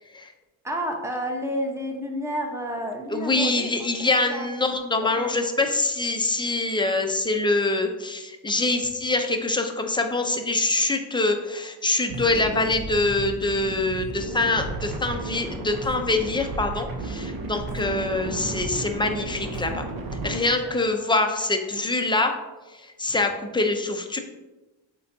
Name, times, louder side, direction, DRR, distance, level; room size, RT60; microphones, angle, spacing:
voice 1, 0.6-3.7 4.3-4.5 5.0-5.4 20.7-21.3, equal, 5° right, 1 dB, 0.9 m, -31 dB
voice 2, 3.1-19.9 20.2-22.3 22.7-24.2, left 2 dB, 10° left, 4 dB, 0.5 m, -24 dB
sound 1, 12.1-20.4, right 3 dB, 50° right, 0.9 m, -33 dB
7.4 x 4.7 x 2.7 m, 1.1 s
cardioid pair, 115°, 46 cm